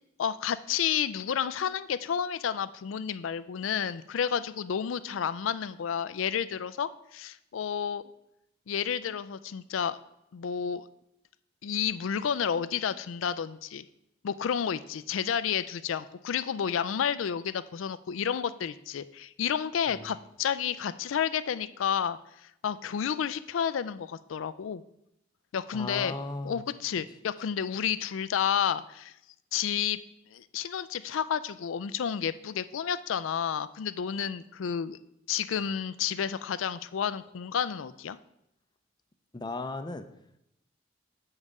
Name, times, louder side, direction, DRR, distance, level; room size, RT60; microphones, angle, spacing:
voice 1, 0.2-8.0 8.7-10.0 10.3-10.8 11.6-13.8 14.2-24.8 25.5-26.1 26.4-29.1 29.5-30.0 30.3-35.0 35.3-38.2, left 8 dB, 85° left, 14 dB, 0.4 m, -31 dB
voice 2, 25.7-26.6 39.3-40.1, left 2 dB, 20° left, 9 dB, 0.5 m, -36 dB
7.3 x 4.8 x 6.6 m, 0.80 s
head